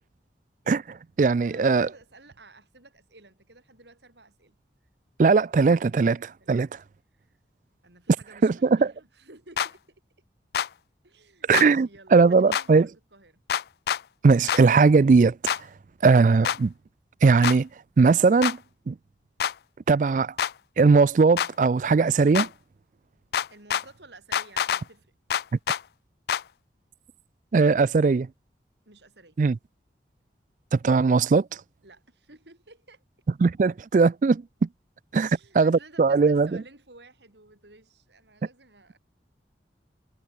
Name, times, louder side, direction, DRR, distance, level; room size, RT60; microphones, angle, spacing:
voice 1, 0.7-1.9 5.2-6.7 8.4-8.9 11.5-12.9 14.2-15.4 16.0-16.7 17.2-17.7 18.0-18.6 18.9-19.0 19.9-20.3 20.8-22.5 27.5-28.3 29.4-29.6 30.7-31.5 33.4-34.7 35.1-35.3 35.6-36.5, right 4 dB, 45° right, 0.3 m, -19 dB
voice 2, 1.3-4.6 6.4-6.6 7.1-7.3 7.8-10.0 11.0-13.4 23.5-25.1 28.9-29.4 31.8-33.0 35.1-39.0, right 2 dB, 80° right, 7.2 m, -53 dB
sound 1, 9.6-9.7 10.5-10.7 11.5-11.7 12.5-12.6 13.5-14.0 14.5-14.6 15.5-15.6 16.4-16.6 17.4-17.6 18.4-18.6 19.4-19.5 20.4-20.5 21.4-21.5 22.3-22.5 23.3-23.8 24.3-24.8 25.3-25.8 26.3-26.4, left 8 dB, 65° left, 0.3 m, -26 dB
head